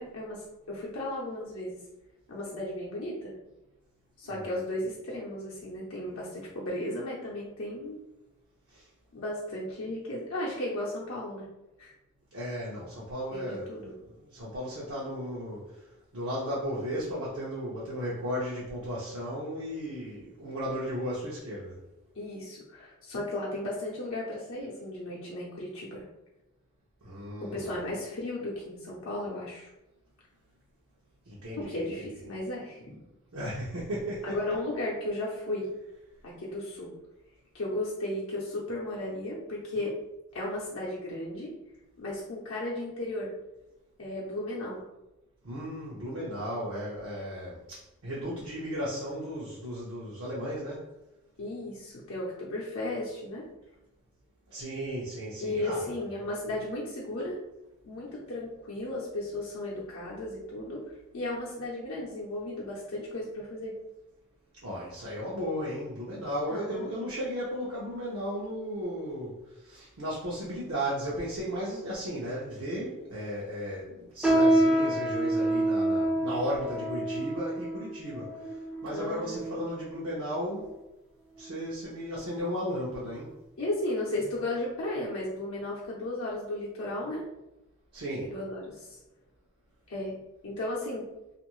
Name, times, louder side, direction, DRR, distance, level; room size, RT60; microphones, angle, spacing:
voice 1, 0.0-1.8 2.3-3.3 4.2-8.0 9.1-11.5 11.8-11.9 13.3-13.9 22.2-26.0 27.4-29.7 31.6-32.8 34.2-35.7 36.2-36.9 37.5-39.9 40.3-41.5 42.0-43.3 44.0-44.8 51.4-53.4 55.4-57.4 57.8-60.8 61.1-63.7 66.5-66.9 78.9-79.7 83.6-87.2 88.2-89.0 89.9-90.2 90.4-91.1, left 1 dB, 65° left, -5 dB, 0.6 m, -35 dB
voice 2, 12.3-15.6 16.1-21.7 27.0-27.8 31.3-31.9 33.3-34.4 45.4-50.9 54.5-55.8 64.6-78.4 78.8-80.7 81.4-83.3 87.9-88.3, equal, 65° right, -6 dB, 0.7 m, -35 dB
sound 1, 74.2-79.9 80.6-80.7 81.4-81.7 82.1-82.3 83.0-83.1, right 1 dB, 5° right, 0.4 m, -27 dB
2.6 x 2.5 x 3.0 m, 0.95 s
head